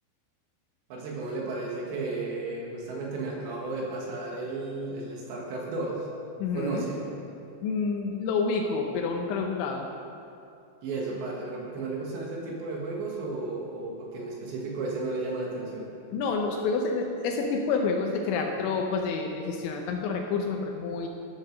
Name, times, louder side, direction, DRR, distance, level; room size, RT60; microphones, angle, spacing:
voice 1, 0.9-6.1 6.5-7.0 10.8-15.9, right 3 dB, 70° right, -2 dB, 3.4 m, -33 dB
voice 2, 6.4-6.9 7.6-9.9 16.1-21.1, left 4 dB, 80° left, 2 dB, 2.9 m, -28 dB
13.0 x 6.3 x 6.4 m, 2.5 s
omnidirectional pair, 5.8 m